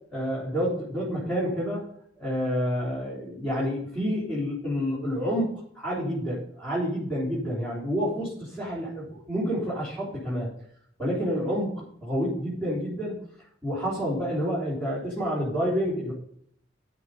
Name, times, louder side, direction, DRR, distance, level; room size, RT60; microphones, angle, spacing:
voice 1, 0.1-1.9 2.2-10.5 11.0-13.2 13.6-16.1, equal, 5° left, -9 dB, 4.0 m, -29 dB
14.0 x 5.5 x 5.4 m, 0.65 s
head